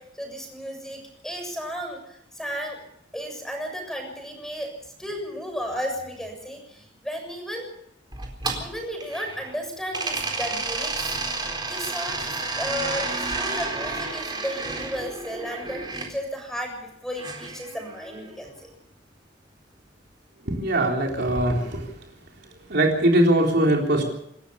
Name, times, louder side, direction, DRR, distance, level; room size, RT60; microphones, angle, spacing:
voice 1, 0.0-2.8 3.1-4.7 5.0-7.7 8.6-18.7, equal, ahead, 4 dB, 7.1 m, -34 dB
sound 1, 8.1-9.5 9.9-16.1 17.2-18.3, right 3 dB, 25° right, 4.1 m, -31 dB
voice 2, 20.5-21.8 22.7-24.0, right 1 dB, 65° right, 0 dB, 3.8 m, -21 dB
27.5 x 13.5 x 7.1 m, 0.77 s
head